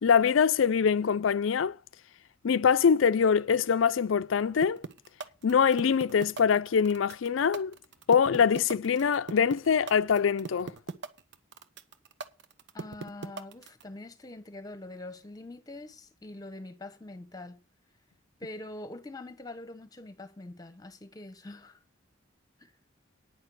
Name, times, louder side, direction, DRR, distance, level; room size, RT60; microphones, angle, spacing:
voice 1, 0.0-1.7 2.4-4.8 5.4-7.7 8.1-10.7, left 6 dB, 90° left, 0.5 m, -24 dB
sound 1, 4.6-13.8, right 3 dB, 65° right, 1.0 m, -38 dB
voice 2, 12.7-17.6 18.4-21.8 22.6-22.7, left 2 dB, 20° left, 1.1 m, -44 dB
9.8 x 6.5 x 7.7 m
head